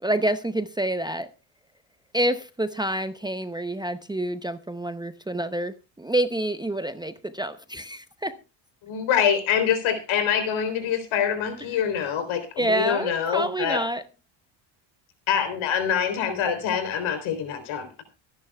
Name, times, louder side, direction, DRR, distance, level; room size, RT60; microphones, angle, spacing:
voice 1, 0.0-1.3 2.1-8.4 12.6-14.0, right 1 dB, 10° right, 0.7 m, -27 dB
voice 2, 8.8-13.8 15.3-18.0, left 8 dB, 75° left, 3.6 m, -25 dB
25.0 x 10.5 x 2.3 m
cardioid pair, 115°, 48 cm